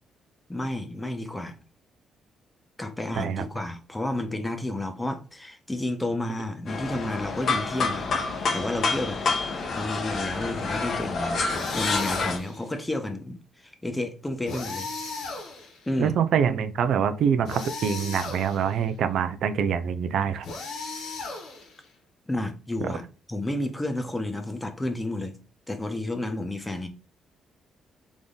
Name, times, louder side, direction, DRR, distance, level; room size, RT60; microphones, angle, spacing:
voice 1, 0.5-1.5 2.8-8.1 8.5-9.2 9.7-14.9 15.9-16.1 22.3-23.0 23.3-25.4 25.7-26.9, left 1 dB, 15° left, 1.0 m, -31 dB
voice 2, 3.1-3.5 16.0-20.5 22.8-22.9, right 7 dB, 70° right, 0.5 m, -25 dB
sound 1, 6.7-12.4, left 4 dB, 55° left, 1.3 m, -28 dB
sound 2, 11.5-12.6 14.5-15.9 17.5-18.7 20.4-21.9, left 3 dB, 80° left, 1.7 m, -36 dB
3.8 x 3.6 x 3.9 m
cardioid pair, 90°, 0 cm